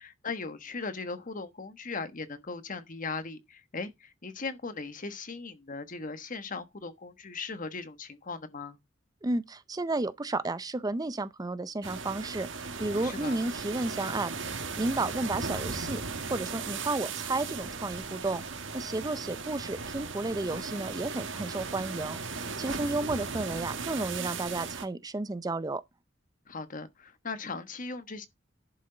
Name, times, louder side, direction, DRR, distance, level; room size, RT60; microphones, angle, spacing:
voice 1, 0.0-8.8 13.0-13.4 22.7-22.9 26.5-28.3, left 4 dB, 45° left, 1.3 m, -38 dB
voice 2, 9.2-16.0 16.3-25.8, right 2 dB, 20° right, 0.5 m, -32 dB
sound 1, 11.8-24.9, right 4 dB, 70° right, 1.8 m, -37 dB
11.0 x 6.3 x 3.9 m
head